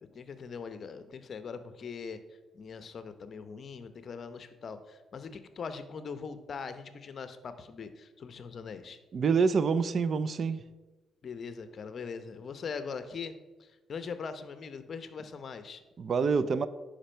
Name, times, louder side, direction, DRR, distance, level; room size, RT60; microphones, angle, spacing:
voice 1, 0.0-2.2 2.5-9.0 11.2-15.8, left 5 dB, 50° left, 0.8 m, -41 dB
voice 2, 9.1-10.6 16.0-16.7, right 5 dB, 50° right, 0.5 m, -26 dB
10.0 x 5.3 x 4.4 m
cardioid pair, 90°, 0 cm